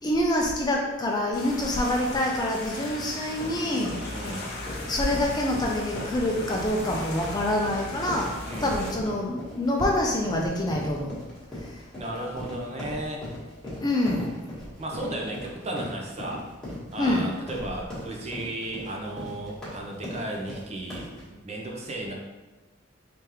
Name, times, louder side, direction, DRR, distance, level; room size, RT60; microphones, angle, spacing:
voice 1, 0.0-4.0 4.8-11.2 13.8-14.3 17.0-17.3, left 1 dB, 20° left, -1 dB, 0.4 m, -26 dB
sound 1, 1.3-8.9, left 2 dB, 50° left, 0.8 m, -37 dB
sound 2, 3.3-21.2, left 1 dB, 5° left, 1.2 m, -39 dB
voice 2, 4.1-4.5 8.4-9.0 11.9-13.2 14.8-16.4 16.9-22.1, right 1 dB, 30° right, -1 dB, 0.6 m, -34 dB
3.5 x 3.3 x 2.9 m, 1.1 s
head